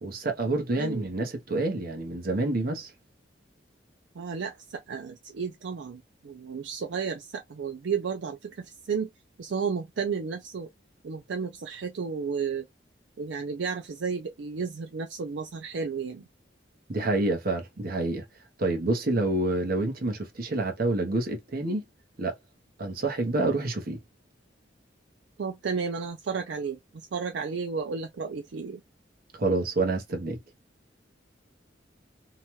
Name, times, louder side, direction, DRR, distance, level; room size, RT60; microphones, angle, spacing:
voice 1, 0.0-2.9 16.9-18.2 18.6-21.8 22.2-22.3 22.8-24.0 29.3-30.4, right 2 dB, 55° right, 0.9 m, -28 dB
voice 2, 0.8-1.1 4.2-9.1 9.4-10.7 11.0-12.7 13.2-16.3 25.4-28.8, right 5 dB, 70° right, 0.4 m, -33 dB
2.9 x 2.3 x 3.0 m
head